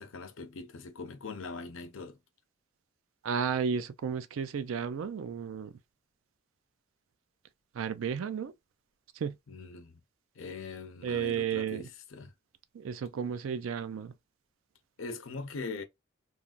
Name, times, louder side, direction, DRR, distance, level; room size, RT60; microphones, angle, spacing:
voice 1, 0.0-2.2 9.5-10.0 10.3-12.3 15.0-15.8, left 3 dB, 80° left, 0.6 m, -41 dB
voice 2, 3.2-5.8 7.7-8.5 9.2-9.4 11.0-11.8 12.7-14.1, right 7 dB, 85° right, 0.4 m, -33 dB
3.2 x 2.2 x 2.4 m
head